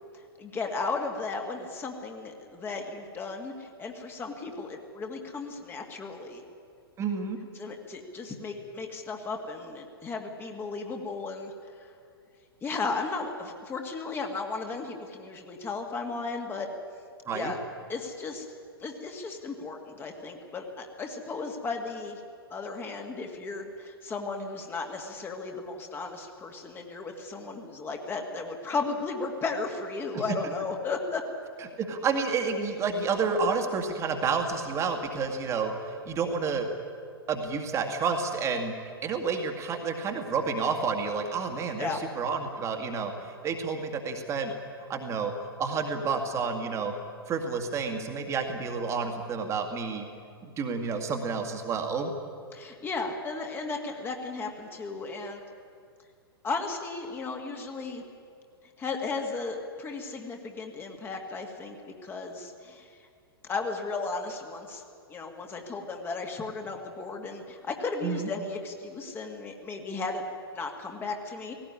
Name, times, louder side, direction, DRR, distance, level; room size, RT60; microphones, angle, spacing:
voice 1, 0.1-6.4 7.5-11.9 12.6-16.7 17.3-17.6 17.9-18.5 18.8-22.2 22.5-31.2 41.8-42.0 52.5-55.4 56.4-58.0 58.8-63.0 63.4-64.8 65.1-70.2 70.5-71.5, left 4 dB, 15° left, 3 dB, 2.2 m, -35 dB
voice 2, 7.0-7.4 17.3-17.5 30.1-30.2 31.8-36.7 37.3-38.7 39.0-44.5 44.9-46.9 47.3-50.0 50.6-52.1 68.0-68.3, right 5 dB, 20° right, 4 dB, 2.1 m, -30 dB
17.5 x 17.5 x 9.8 m, 2.3 s
figure-of-eight pair, 105°, 13 cm